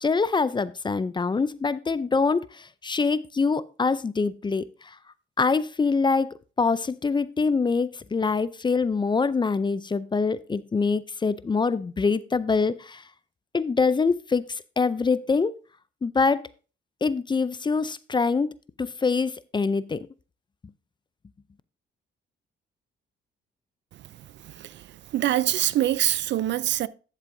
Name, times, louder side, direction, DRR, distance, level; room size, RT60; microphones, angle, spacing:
voice 1, 0.0-5.0 5.4-13.0 13.5-15.6 16.0-16.5 17.0-18.5 18.8-20.1, left 4 dB, 25° left, 0.5 m, -25 dB
voice 2, 24.4-26.9, right 13 dB, 65° right, 0.5 m, -25 dB
11.0 x 7.4 x 2.6 m
cardioid pair, 90°, 20 cm